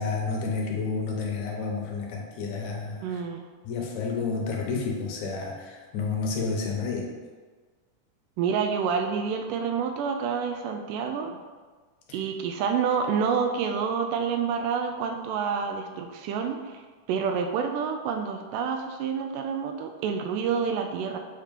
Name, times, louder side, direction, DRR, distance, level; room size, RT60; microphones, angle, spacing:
voice 1, 0.0-3.2 3.7-7.1 12.1-12.2, left 4 dB, 70° left, 0 dB, 2.1 m, -30 dB
voice 2, 3.0-3.5 8.4-11.4 12.1-16.8 17.1-21.2, right 6 dB, 85° right, 4 dB, 2.1 m, -28 dB
7.9 x 2.9 x 5.2 m, 1.4 s
omnidirectional pair, 3.7 m